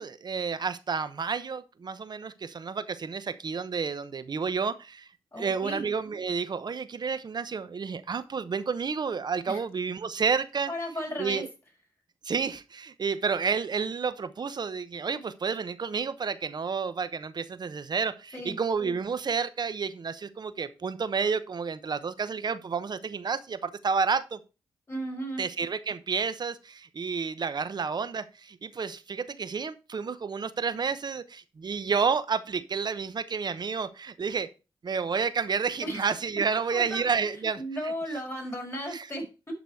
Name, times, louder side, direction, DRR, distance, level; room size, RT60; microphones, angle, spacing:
voice 1, 0.0-5.1 5.4-10.7 11.2-11.5 12.2-24.4 25.4-34.5 34.8-37.9 38.9-39.1, right 5 dB, 50° right, 0.9 m, -30 dB
voice 2, 5.3-5.8 9.5-9.6 10.7-11.4 18.3-18.6 24.9-25.4 35.8-36.1 36.7-37.1 37.6-39.3, equal, 30° left, 5.7 m, -35 dB
11.5 x 4.0 x 4.7 m
cardioid pair, 65°, 9 cm